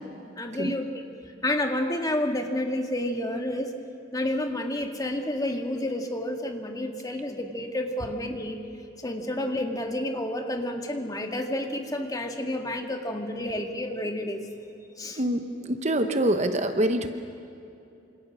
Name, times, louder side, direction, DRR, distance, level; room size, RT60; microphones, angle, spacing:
voice 1, 0.4-0.9 1.4-3.7 4.1-8.6 9.0-14.4 15.0-15.2, left 1 dB, 20° left, 4 dB, 2.0 m, -30 dB
voice 2, 15.2-17.1, right 1 dB, 35° right, 7 dB, 1.1 m, -25 dB
27.5 x 27.0 x 6.4 m, 2.7 s
head